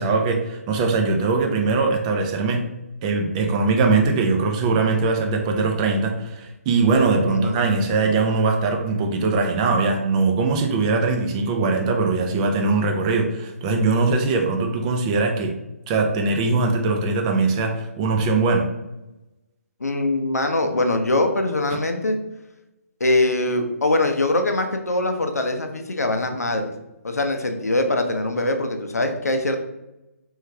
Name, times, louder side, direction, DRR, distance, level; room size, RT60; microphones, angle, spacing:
voice 1, 0.0-2.6 3.0-15.5 15.9-18.6 21.7-21.8, right 3 dB, 25° right, 3 dB, 0.5 m, -21 dB
voice 2, 7.3-7.6 19.8-22.2 23.0-26.7 27.0-29.6, left 2 dB, 80° left, 5 dB, 0.6 m, -22 dB
3.5 x 3.2 x 3.3 m, 0.97 s
figure-of-eight pair, 140°, 8 cm